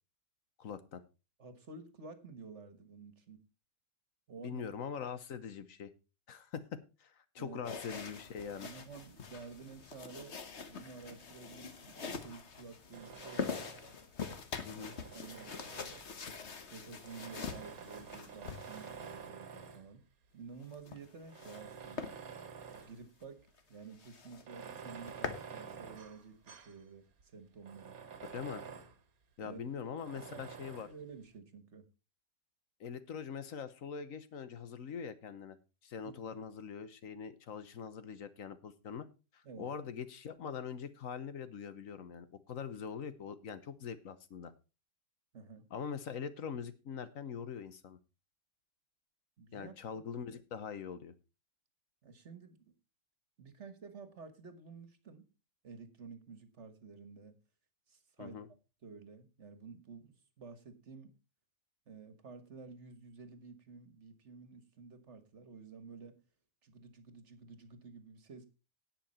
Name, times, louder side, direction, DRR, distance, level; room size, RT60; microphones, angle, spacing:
voice 1, 0.6-1.0 4.4-5.9 6.3-8.7 14.6-14.9 28.3-28.6 29.4-30.9 32.8-35.6 35.8-39.1 39.3-44.5 45.7-48.0 49.5-51.1 58.2-58.5, left 7 dB, 70° left, 1.4 m, -43 dB
voice 2, 1.4-3.4 4.3-4.6 7.4-7.6 8.6-13.6 14.7-14.9 15.1-16.0 16.7-20.0 20.3-22.1 22.8-28.0 29.4-29.6 30.3-30.4 30.9-31.9 36.1-36.4 39.4-39.7 45.3-45.7 49.4-49.7 52.0-52.7 53.4-55.3 55.6-57.3 57.9-58.4 58.8-61.1 61.9-66.2 66.6-68.5, right 4 dB, 55° right, 1.7 m, -51 dB
sound 1, 7.6-19.3 20.6-21.6 22.0-22.2 22.6-22.8 23.2-23.3 23.6-23.7 24.0-24.4 24.8-25.5, left 5 dB, 50° left, 1.5 m, -44 dB
Tools, 12.9-14.0 14.7-16.3 17.0-19.9 20.6-20.7 21.3-23.0 23.4-23.5 24.3-26.8 27.2-27.3 27.6-29.0 30.0-31.0, right 6 dB, 85° right, 1.7 m, -49 dB
17.5 x 5.9 x 4.2 m
omnidirectional pair, 1.5 m